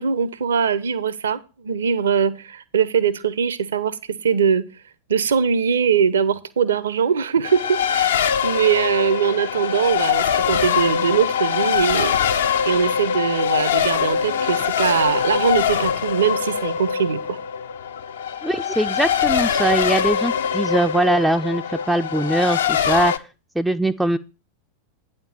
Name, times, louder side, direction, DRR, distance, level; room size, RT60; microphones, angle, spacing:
voice 1, 0.0-4.6 5.1-12.1 12.6-17.4, right 7 dB, 65° right, 16 dB, 0.6 m, -21 dB
Race car auto racing, 7.4-23.2, left 8 dB, 65° left, 0.5 m, -23 dB
voice 2, 18.4-23.1 23.6-24.2, right 1 dB, 5° right, 6 dB, 0.3 m, -21 dB
9.1 x 4.4 x 7.0 m, 0.31 s
figure-of-eight pair, 90°, 0 cm